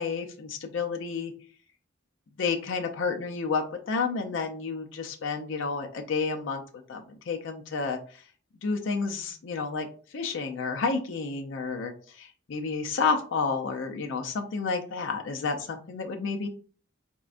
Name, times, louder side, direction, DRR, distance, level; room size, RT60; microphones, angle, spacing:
voice 1, 0.0-1.3 2.4-6.6 6.9-8.2 8.6-16.5, left 4 dB, 75° left, 4 dB, 0.5 m, -30 dB
4.2 x 3.6 x 2.5 m, 0.42 s
head